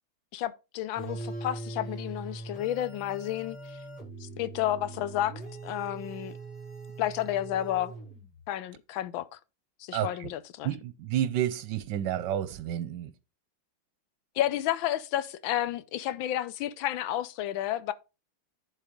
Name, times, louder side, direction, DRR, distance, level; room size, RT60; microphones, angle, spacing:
voice 1, 0.3-3.6 4.2-5.3 5.6-6.3 7.0-7.9 8.5-9.3 9.8-10.7 14.4-17.9, left 12 dB, 75° left, 1.4 m, -31 dB
sound 1, 0.9-8.4, right 3 dB, 40° left, 5.5 m, -41 dB
voice 2, 9.9-10.3 10.6-13.1, right 11 dB, 70° right, 1.2 m, -30 dB
10.5 x 4.2 x 5.1 m
omnidirectional pair, 2.3 m